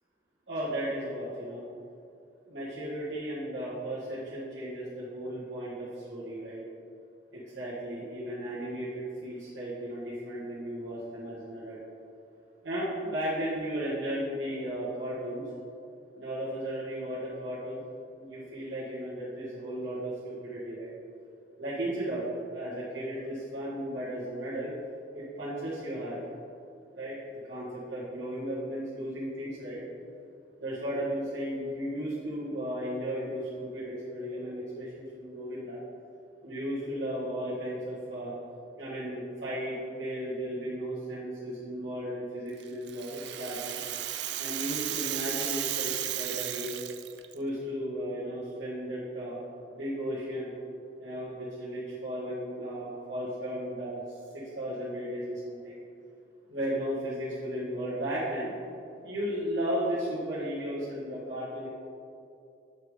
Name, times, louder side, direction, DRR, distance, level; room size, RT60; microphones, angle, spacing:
voice 1, 0.5-1.6 2.5-6.6 7.3-11.8 12.6-15.4 16.1-17.8 18.2-20.9 21.6-22.2 22.5-24.7 25.1-26.2 26.9-27.2 27.4-29.8 30.6-35.8 36.4-38.3 38.8-43.8 44.4-46.8 47.3-49.4 49.7-50.5 51.0-55.7 56.5-58.5 59.0-61.7, equal, 85° right, -12 dB, 1.8 m, -35 dB
Rattle (instrument), 42.6-47.3, right 12 dB, 70° right, 0.4 m, -34 dB
7.5 x 6.2 x 3.8 m, 2.6 s
head